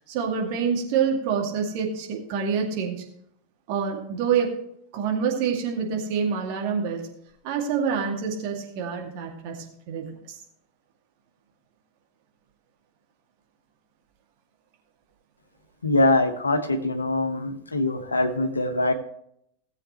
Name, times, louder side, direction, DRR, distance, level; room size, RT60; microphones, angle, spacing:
voice 1, 0.1-3.0 3.7-4.5 4.9-7.1 7.4-10.4, right 6 dB, 45° right, 1 dB, 2.3 m, -27 dB
voice 2, 15.8-18.9, left 2 dB, 75° left, 7 dB, 1.3 m, -23 dB
17.5 x 7.7 x 3.1 m, 0.72 s
figure-of-eight pair, 90°, 0 cm